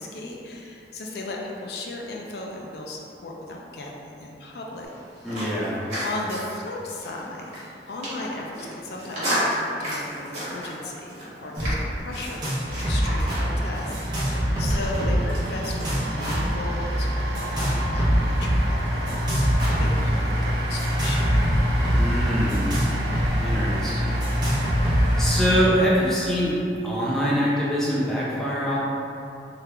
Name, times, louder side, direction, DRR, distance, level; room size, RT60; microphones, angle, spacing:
voice 1, 0.0-4.9 5.2-5.5 6.0-21.4, left 2 dB, 65° left, -1 dB, 0.4 m, -36 dB
sound 1, 4.8-16.5, equal, 40° right, 1.3 m, -34 dB
voice 2, 5.2-5.8 21.9-22.8 23.4-24.2 24.6-24.9 25.2-26.6 26.8-28.8, equal, ahead, -7 dB, 0.4 m, -24 dB
sound 2, 11.6-11.7 12.0-12.6 12.8-13.4 13.9-15.3 15.6-16.6 17.3-18.6 19.1-20.1 20.8-23.3 23.6-23.7 24.2-25.3, equal, 25° right, 0.7 m, -25 dB
sound 3, 12.7-25.7, equal, 75° right, 0.5 m, -27 dB
3.2 x 2.4 x 3.4 m, 2.7 s
head